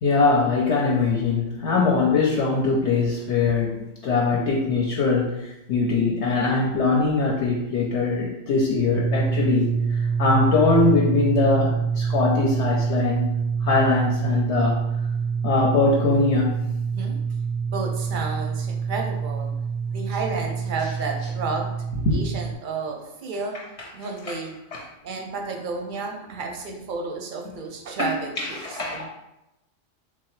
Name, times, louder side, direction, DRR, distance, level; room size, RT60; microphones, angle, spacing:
voice 1, 0.0-9.7 10.2-13.3 13.6-14.8 15.4-16.6 22.1-22.2 24.7-24.8 28.0-28.1 28.4-29.1, left 3 dB, 65° left, -3 dB, 0.8 m, -22 dB
sound 1, 8.9-22.5, right 6 dB, 85° right, 1.0 m, -26 dB
voice 2, 17.6-19.5 19.9-21.7 22.1-23.6 23.9-24.6 25.0-29.1, right 4 dB, 55° right, 2 dB, 0.6 m, -31 dB
3.7 x 2.8 x 3.1 m, 0.90 s
omnidirectional pair, 1.4 m